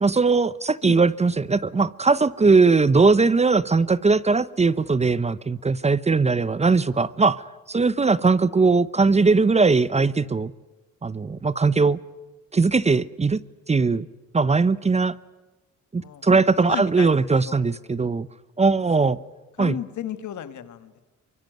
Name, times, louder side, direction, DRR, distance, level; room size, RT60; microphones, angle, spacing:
voice 1, 0.0-10.5 11.0-12.0 12.5-13.4 13.7-14.1 14.3-15.2 15.9-18.3 18.6-19.2 19.6-19.8, right 4 dB, 20° right, 0.8 m, -20 dB
voice 2, 16.0-17.6 19.6-20.9, left 10 dB, 70° left, 2.0 m, -34 dB
24.5 x 22.0 x 9.3 m
cardioid pair, 90°, 30 cm